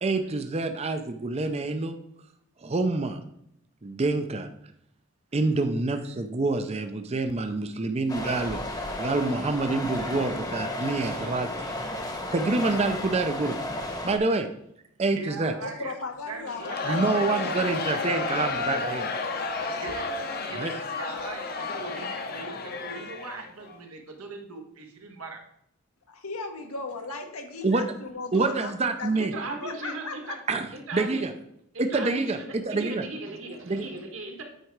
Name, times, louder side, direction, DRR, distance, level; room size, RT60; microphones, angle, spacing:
voice 1, 0.0-1.9 2.6-3.2 3.8-4.5 5.3-11.6 12.3-13.6 14.0-14.5 15.0-15.5 16.8-19.1 20.6-20.7 27.6-27.9 28.3-29.3 30.5-30.7 30.9-31.3 31.8-33.0 33.7-33.8, right 3 dB, 30° right, 7 dB, 0.5 m, -27 dB
sound 1, 8.1-14.2, left 1 dB, 20° left, 1.0 m, -33 dB
voice 2, 11.2-11.7 15.1-15.9 16.3-17.4 19.8-20.1 20.5-25.4, right 4 dB, 90° right, 3 dB, 1.4 m, -41 dB
voice 3, 15.6-18.0 18.5-19.1 26.1-28.7 29.0-30.3, left 3 dB, 85° left, 4 dB, 1.4 m, -37 dB
Crowd, 16.5-23.8, left 4 dB, 45° left, 0.8 m, -32 dB
voice 4, 29.1-30.4 30.7-31.2 31.7-34.4, right 2 dB, 65° right, 3 dB, 1.5 m, -37 dB
9.1 x 4.8 x 4.6 m, 0.75 s
head